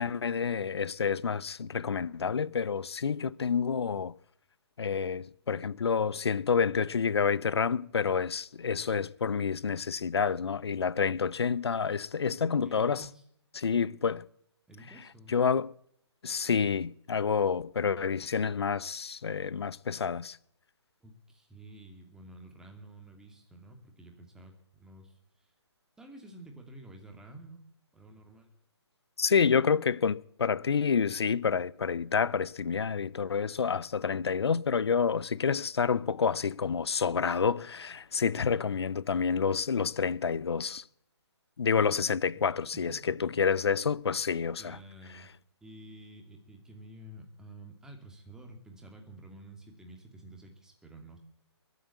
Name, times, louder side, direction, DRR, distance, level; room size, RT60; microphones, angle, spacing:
voice 1, 0.0-4.1 4.8-13.1 13.5-14.3 15.3-15.7 16.2-20.4 29.2-40.8 41.6-44.8, left 6 dB, 65° left, 0.7 m, -28 dB
voice 2, 12.3-13.2 14.7-15.6 21.0-25.5 26.0-27.6 27.9-28.5 42.3-42.5 42.7-43.3 44.6-45.3 45.6-51.2, right 1 dB, 5° right, 2.4 m, -50 dB
21.5 x 8.0 x 8.3 m
figure-of-eight pair, 140°, 15 cm